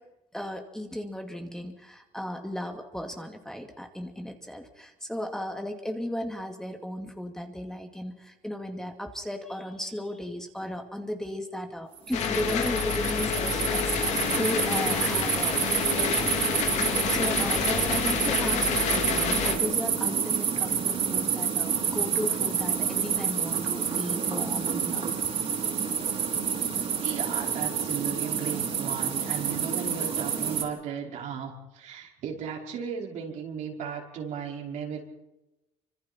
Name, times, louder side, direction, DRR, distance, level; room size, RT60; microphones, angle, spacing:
voice 1, 0.3-15.6 15.9-25.0, left 1 dB, 5° left, 3 dB, 2.5 m, -35 dB
sound 1, 12.0-30.6, right 7 dB, 50° right, 5.4 m, -28 dB
sound 2, 12.1-19.6, left 7 dB, 60° left, 3.4 m, -28 dB
voice 2, 27.0-35.0, right 7 dB, 65° right, 0 dB, 5.4 m, -35 dB
27.5 x 25.5 x 4.5 m, 0.98 s
cardioid pair, 105°, 13 cm